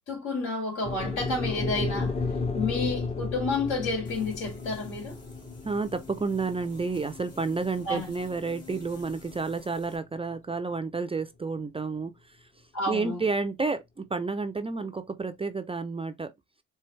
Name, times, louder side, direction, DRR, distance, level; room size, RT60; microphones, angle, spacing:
voice 1, 0.1-2.1 2.5-5.2 7.8-8.1 12.7-13.2, left 3 dB, 75° left, 3.2 m, -30 dB
sound 1, 0.8-9.1, left 4 dB, 20° left, 0.7 m, -33 dB
sound 2, 4.0-10.0, left 3 dB, 50° left, 2.6 m, -49 dB
voice 2, 5.6-12.4 12.9-16.3, right 4 dB, 20° right, 0.4 m, -30 dB
4.4 x 3.3 x 3.2 m
cardioid pair, 90°, 30 cm